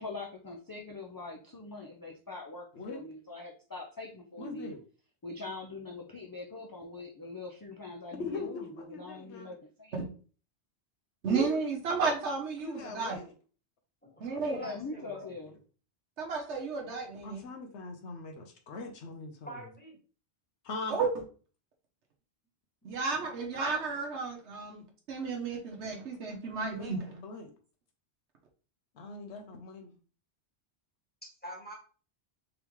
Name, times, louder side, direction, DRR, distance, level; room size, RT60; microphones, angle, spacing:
voice 1, 0.0-4.8 5.2-10.0 14.5-15.6, left 3 dB, 35° left, -1 dB, 0.3 m, -43 dB
voice 2, 4.4-4.8 8.2-9.5 12.6-13.3 17.2-19.6 20.6-21.0 26.7-27.5 28.9-30.0, left 3 dB, 80° left, 4 dB, 1.0 m, -41 dB
voice 3, 11.2-13.2 14.2-14.6 16.2-17.4 20.9-21.1 22.8-24.8 25.1-27.1, right 4 dB, 85° right, 1 dB, 1.1 m, -32 dB
voice 4, 14.0-15.2 19.5-20.0 31.2-31.7, right 1 dB, 10° left, -3 dB, 1.3 m, -45 dB
3.6 x 3.6 x 3.0 m, 0.39 s
omnidirectional pair, 1.1 m